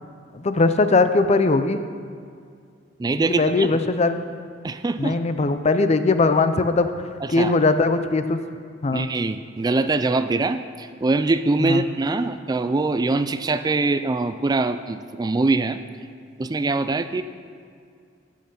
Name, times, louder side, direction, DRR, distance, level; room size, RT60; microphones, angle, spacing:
voice 1, 0.3-1.8 3.4-4.2 5.0-6.9 7.3-8.4 8.8-9.1 11.6-11.8, left 3 dB, 35° left, 10 dB, 0.5 m, -20 dB
voice 2, 3.0-3.8 4.6-5.2 7.2-7.5 8.9-15.8 16.4-17.2, right 3 dB, 20° right, 11 dB, 0.3 m, -23 dB
14.0 x 6.4 x 5.4 m, 2.2 s
head